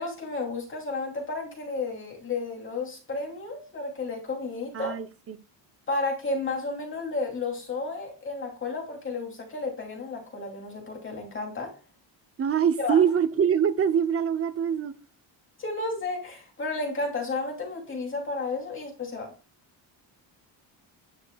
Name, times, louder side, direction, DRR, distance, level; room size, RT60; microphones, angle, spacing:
voice 1, 0.0-5.0 5.9-11.8 12.8-13.0 15.6-19.3, left 3 dB, 25° left, 2.9 m, -32 dB
voice 2, 4.7-5.4 12.4-14.9, right 8 dB, 30° right, 0.6 m, -24 dB
10.0 x 6.3 x 2.3 m
cardioid pair, 175°, 44 cm